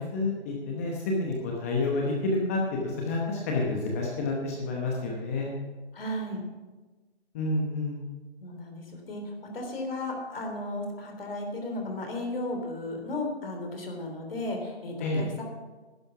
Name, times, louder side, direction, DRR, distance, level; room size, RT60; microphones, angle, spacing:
voice 1, 0.0-5.5 7.3-8.0 15.0-15.2, left 2 dB, 15° left, -1 dB, 0.9 m, -29 dB
voice 2, 5.9-6.4 8.4-15.4, left 1 dB, 60° left, 2 dB, 3.4 m, -34 dB
12.0 x 10.5 x 5.9 m, 1.2 s
hypercardioid pair, 160°, 33 cm